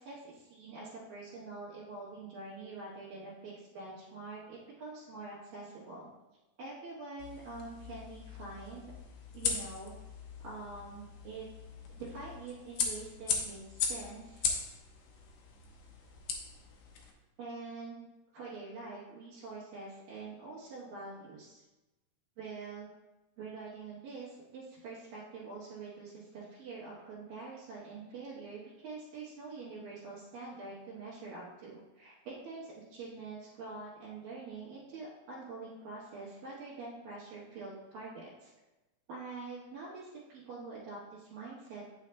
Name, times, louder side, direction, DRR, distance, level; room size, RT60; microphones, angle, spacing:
voice 1, 0.0-6.1 6.6-8.9 9.3-9.9 10.4-11.5 11.9-14.5 17.4-18.1 18.3-21.6 22.4-22.9 23.4-38.5 39.1-41.8, right 3 dB, 75° right, -9 dB, 3.0 m, -45 dB
sound 1, 7.2-17.1, left 5 dB, 75° left, 2.0 m, -39 dB
9.0 x 6.3 x 2.2 m, 1.1 s
omnidirectional pair, 4.0 m